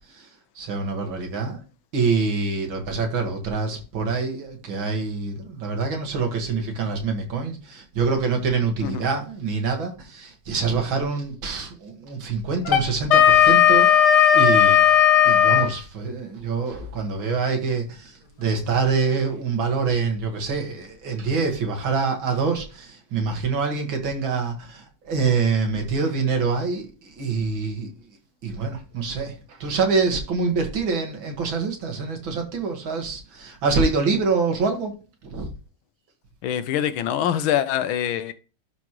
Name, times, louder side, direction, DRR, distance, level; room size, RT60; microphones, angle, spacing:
voice 1, 0.6-1.6 1.9-14.8 15.2-27.9 28.4-34.9 35.2-35.5, right 4 dB, 70° right, 2.5 m, -25 dB
Wind instrument woodwind instrument, 12.6-15.7, left 9 dB, 55° left, 1.8 m, -15 dB
voice 2, 36.4-38.3, left 10 dB, 80° left, 1.5 m, -24 dB
11.5 x 4.9 x 3.1 m
omnidirectional pair, 2.3 m